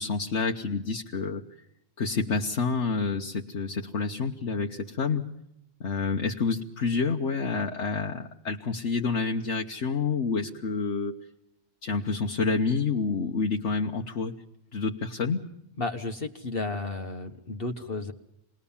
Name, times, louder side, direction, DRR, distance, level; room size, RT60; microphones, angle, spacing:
voice 1, 0.0-1.4 2.0-5.3 5.8-11.2 11.8-14.4 14.7-15.4, left 4 dB, 65° left, 2 dB, 1.4 m, -28 dB
voice 2, 15.8-18.1, left 3 dB, 45° left, 4 dB, 1.4 m, -33 dB
27.5 x 20.5 x 7.1 m, 0.82 s
omnidirectional pair, 1.3 m